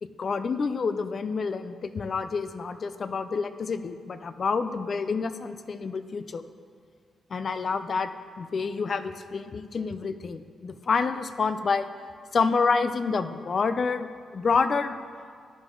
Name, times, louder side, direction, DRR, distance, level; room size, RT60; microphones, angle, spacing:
voice 1, 0.0-6.4 7.3-8.1 8.4-11.9 12.3-15.0, left 4 dB, 55° left, 11 dB, 0.5 m, -28 dB
11.0 x 9.7 x 3.8 m, 2.1 s
cardioid pair, 65°, 0 cm